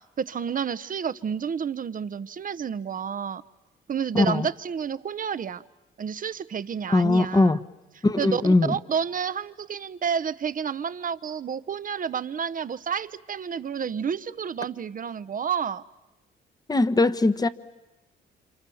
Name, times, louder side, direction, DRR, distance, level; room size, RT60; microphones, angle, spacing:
voice 1, 0.2-3.4 3.9-5.6 6.0-7.5 8.2-15.8, right 7 dB, 45° right, 14 dB, 0.9 m, -30 dB
voice 2, 4.1-4.5 6.9-7.6 8.0-8.8 16.7-17.5, left 2 dB, 20° left, 11 dB, 1.2 m, -20 dB
29.5 x 27.0 x 7.2 m, 1.0 s
cardioid pair, 90°, 20 cm